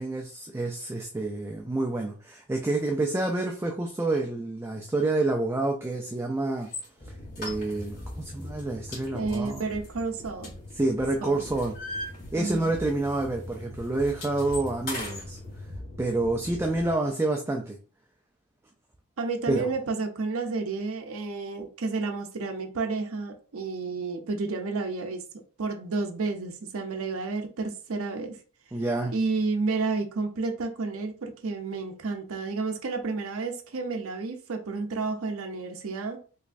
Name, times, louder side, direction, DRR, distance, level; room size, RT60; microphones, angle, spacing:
voice 1, 0.0-6.7 7.4-9.6 10.8-12.0 12.3-15.4 16.0-17.8 19.5-19.7 28.7-29.1, right 2 dB, 10° right, 0.3 m, -28 dB
sound 1, 6.6-6.9 7.3-8.1 8.4-8.6 8.9-11.0 11.3-12.8 13.0-13.2 13.5-15.3, left 2 dB, 45° left, 1.8 m, -39 dB
sound 2, 7.0-17.0, left 1 dB, 25° left, 1.1 m, -42 dB
voice 2, 9.1-10.5 11.2-11.4 12.4-12.7 19.2-28.4 29.1-36.2, right 3 dB, 65° right, 0.6 m, -31 dB
3.4 x 3.1 x 2.5 m
head